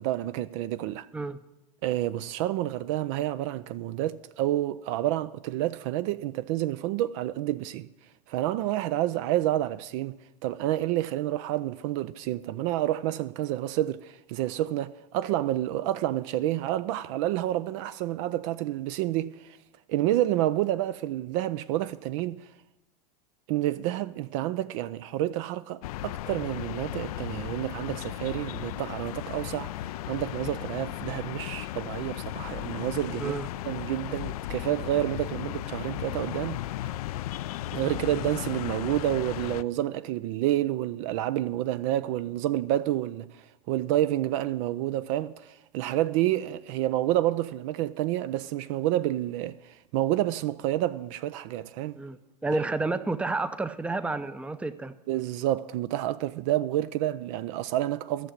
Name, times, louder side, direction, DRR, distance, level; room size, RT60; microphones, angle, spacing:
voice 1, 0.0-1.1 1.8-7.9 8.3-19.6 19.9-22.5 23.5-29.7 30.1-33.4 33.7-36.6 37.7-43.3 43.7-52.0 55.1-58.3, right 14 dB, 50° right, 0.5 m, -29 dB
sound 1, 25.8-39.6, left 14 dB, 60° left, 0.4 m, -35 dB
voice 2, 52.0-54.9, right 3 dB, 5° right, 0.6 m, -30 dB
13.5 x 6.6 x 8.9 m
hypercardioid pair, 90°, 21 cm